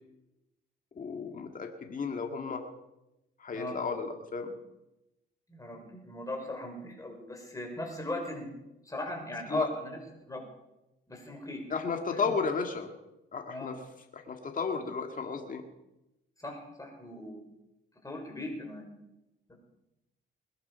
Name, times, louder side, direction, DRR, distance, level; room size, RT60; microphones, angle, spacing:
voice 1, 1.0-2.6 3.4-4.5 9.5-9.7 11.7-12.9 13.3-13.8 14.1-15.7, left 5 dB, 40° left, 4 dB, 2.2 m, -33 dB
voice 2, 5.5-8.5 8.9-10.0 10.3-10.4 11.1-11.6 13.5-13.7 16.4-17.4 18.0-18.9, left 1 dB, 15° left, 1 dB, 6.0 m, -38 dB
21.5 x 11.5 x 5.8 m, 0.92 s
cardioid pair, 90°, 20 cm